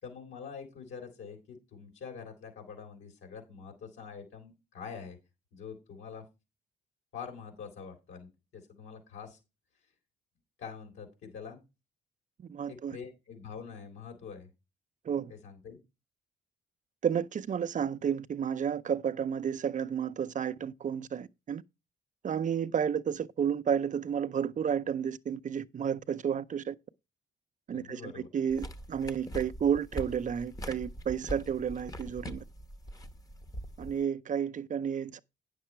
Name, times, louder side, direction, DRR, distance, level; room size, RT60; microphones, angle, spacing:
voice 1, 0.0-5.2 5.5-6.2 7.1-9.4 10.6-11.6 12.7-14.5 15.3-15.8 27.7-28.3, left 6 dB, 75° left, 3.9 m, -45 dB
voice 2, 12.5-13.0 15.1-15.3 17.0-21.6 22.2-26.7 27.7-32.4 33.8-35.2, right 8 dB, 40° right, 0.5 m, -31 dB
sound 1, 28.5-34.0, equal, 20° left, 0.9 m, -42 dB
9.6 x 6.7 x 4.5 m
cardioid pair, 90°, 20 cm